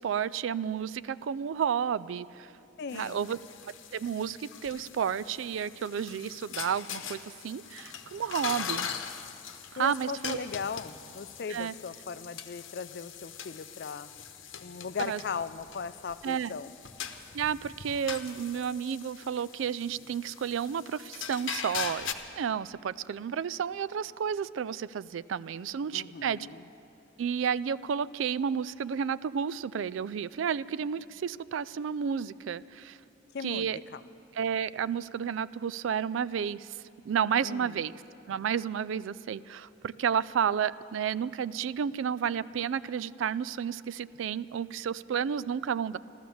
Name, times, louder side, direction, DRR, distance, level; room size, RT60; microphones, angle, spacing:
voice 1, 0.0-2.5 2.9-3.4 3.9-8.9 9.7-10.5 11.5-11.7 15.1-15.2 16.2-16.5 17.3-26.5 27.2-33.0 33.4-33.8 34.3-36.8 37.1-37.9 38.3-46.0, right 7 dB, 80° right, 18 dB, 0.3 m, -31 dB
voice 2, 2.8-3.3 9.8-14.1 14.6-16.7 25.9-26.7 33.3-34.0 37.4-37.8, left 5 dB, 55° left, 14 dB, 0.4 m, -38 dB
sound 1, 2.9-22.1, left 7 dB, 85° left, 0.9 m, -41 dB
14.5 x 13.5 x 7.0 m, 2.7 s
head